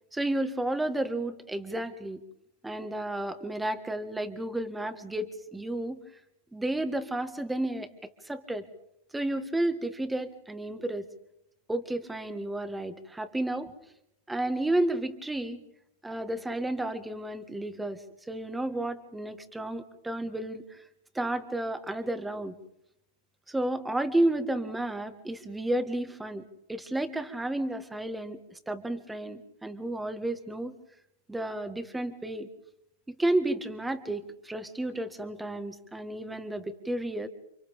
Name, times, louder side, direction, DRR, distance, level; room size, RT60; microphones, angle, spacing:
voice 1, 0.1-2.2 2.6-6.0 6.5-7.9 8.2-8.6 9.1-11.0 11.7-13.7 14.3-15.6 16.0-20.8 21.1-22.6 23.5-26.4 26.7-30.8 31.3-32.5 33.1-37.3, right 1 dB, 5° right, 9 dB, 1.7 m, -32 dB
30.0 x 25.5 x 3.6 m, 0.80 s
hypercardioid pair, 115°, 0 cm